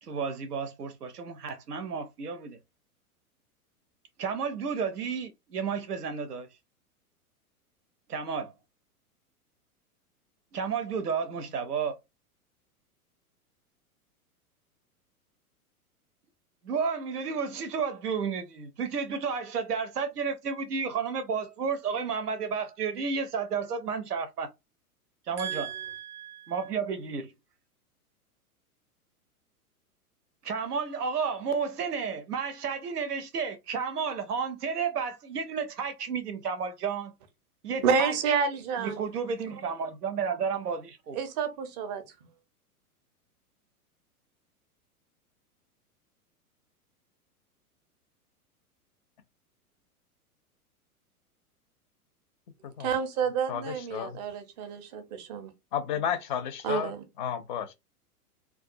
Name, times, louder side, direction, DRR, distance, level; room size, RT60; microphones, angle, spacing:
voice 1, 0.0-2.6 4.2-6.5 8.1-8.5 10.5-11.9 16.6-24.5 25.3-25.7 26.5-27.3 30.4-37.1 37.6-38.1 38.8-41.2, right 6 dB, 85° right, 0.5 m, -32 dB
voice 2, 25.4-26.5 37.8-39.0 41.1-42.0 52.8-55.5 56.6-57.0, right 6 dB, 30° right, 0.4 m, -30 dB
voice 3, 52.6-52.9 53.5-54.2 55.7-57.7, left 8 dB, 35° left, 0.4 m, -33 dB
2.3 x 2.3 x 2.5 m
figure-of-eight pair, 100°, 45 cm